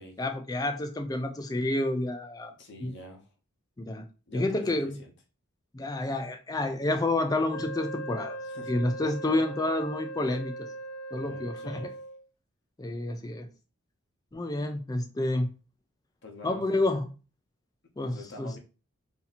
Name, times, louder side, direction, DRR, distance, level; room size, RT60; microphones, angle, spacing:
voice 1, 0.2-2.5 2.8-2.9 3.8-4.0 4.3-5.0 5.7-8.4 8.7-10.5 11.1-11.8 12.8-13.5 14.3-15.5 16.4-17.1 18.0-18.5, left 2 dB, 15° left, 0.4 m, -29 dB
voice 2, 2.6-3.3 4.3-5.1 8.5-8.7 11.1-11.9 16.2-16.7 18.0-18.6, left 2 dB, 55° left, 0.9 m, -46 dB
Wind instrument woodwind instrument, 7.5-12.2, right 2 dB, 70° left, 0.6 m, -39 dB
2.8 x 2.7 x 4.1 m
head